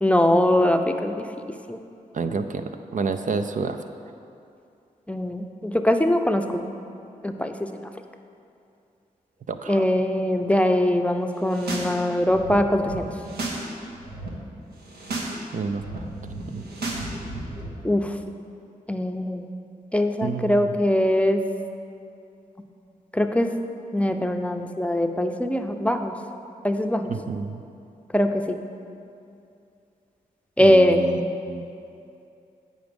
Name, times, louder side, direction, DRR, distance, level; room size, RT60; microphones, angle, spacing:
voice 1, 0.0-1.2 1.7-1.8 5.1-6.4 7.2-7.5 9.7-13.1 17.8-18.1 18.9-19.5 19.9-21.4 23.1-23.5 23.9-26.1 26.6-27.1 28.1-28.6 30.6-31.1, left 1 dB, 10° left, 6 dB, 0.6 m, -21 dB
voice 2, 2.1-3.8 9.5-9.8 15.5-16.0 16.5-16.6 20.2-20.8 27.1-27.6 30.6-31.7, right 4 dB, 55° right, 8 dB, 0.5 m, -29 dB
sound 1, 11.4-11.9 12.2-13.6 13.9-14.3 14.8-15.3 15.6-17.7, right 2 dB, 85° right, 1.1 m, -33 dB
9.0 x 5.1 x 5.2 m, 2.6 s
supercardioid pair, 45°, 16 cm